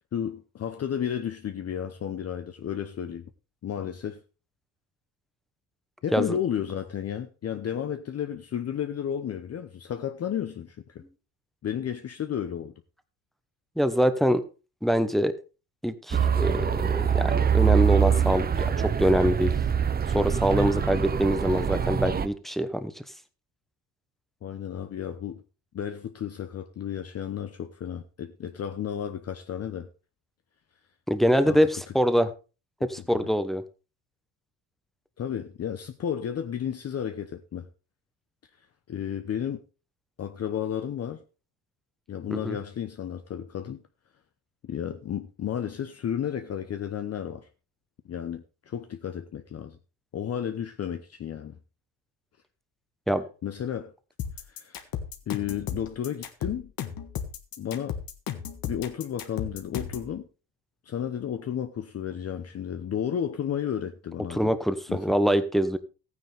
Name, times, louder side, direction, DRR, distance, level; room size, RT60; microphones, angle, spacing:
voice 1, 0.1-3.3 3.6-4.2 6.0-11.0 11.6-12.7 24.4-25.4 25.7-29.9 31.5-31.6 35.2-37.7 38.6-39.6 40.2-41.2 42.1-43.8 44.6-47.5 48.1-49.8 50.1-51.6 53.4-53.9 54.5-54.9 55.3-56.7 57.6-58.0 58.6-60.3 60.8-64.5 64.9-65.0, left 9 dB, 35° left, 0.8 m, -32 dB
voice 2, 13.8-14.4 14.8-15.3 15.8-19.5 20.1-23.0 31.1-32.3 32.8-33.6 42.4-42.6 53.1-53.2 64.3-65.8, equal, ahead, 1.0 m, -24 dB
sound 1, 16.1-22.3, right 7 dB, 25° right, 0.6 m, -24 dB
sound 2, 54.2-60.1, left 8 dB, 55° left, 1.7 m, -34 dB
14.5 x 9.6 x 3.4 m
cardioid pair, 125°, 41 cm